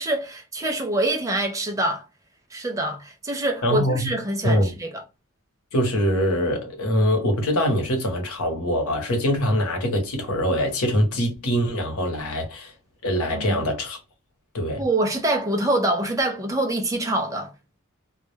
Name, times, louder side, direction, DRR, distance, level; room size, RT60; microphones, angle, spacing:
voice 1, 0.0-2.0 2.5-5.0 13.3-13.6 14.8-17.5, right 1 dB, 15° right, 0.4 m, -25 dB
voice 2, 3.6-4.2 4.4-4.8 5.7-12.7 13.0-14.0 14.5-14.8, equal, 85° left, 0.9 m, -23 dB
2.2 x 2.1 x 3.1 m
head